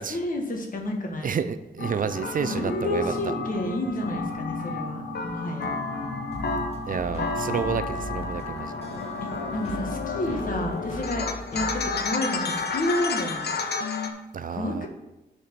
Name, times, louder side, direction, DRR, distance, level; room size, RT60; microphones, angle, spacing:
voice 1, 0.1-1.3 2.4-5.7 9.2-11.3 11.5-13.5 14.5-14.9, left 1 dB, 50° left, 1 dB, 1.4 m, -30 dB
voice 2, 1.2-3.1 6.9-8.7 14.3-14.9, right 6 dB, 55° right, 11 dB, 0.4 m, -29 dB
sound 1, 1.8-14.1, left 4 dB, 70° left, 0.8 m, -31 dB
sound 2, 2.0-11.3, right 1 dB, 15° left, 2.0 m, -41 dB
sound 3, 6.3-13.0, equal, 35° left, 1.4 m, -39 dB
6.7 x 4.4 x 6.7 m, 0.96 s
wide cardioid pair, 160°, 17 cm